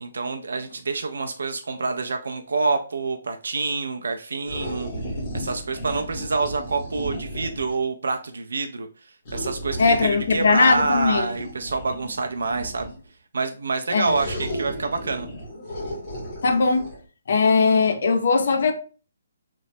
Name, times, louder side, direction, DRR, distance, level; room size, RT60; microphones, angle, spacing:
voice 1, 0.0-4.9 5.3-8.9 9.3-12.9 13.3-15.3, right 4 dB, 85° right, 0.4 m, -27 dB
sound 1, 4.5-7.8 9.2-13.1 14.0-17.0, equal, 25° left, 1.0 m, -34 dB
voice 2, 9.8-11.3 13.9-14.1 16.4-16.9 17.3-18.7, left 4 dB, 50° left, 0.4 m, -19 dB
2.9 x 2.0 x 2.6 m
hypercardioid pair, 175°, 0 cm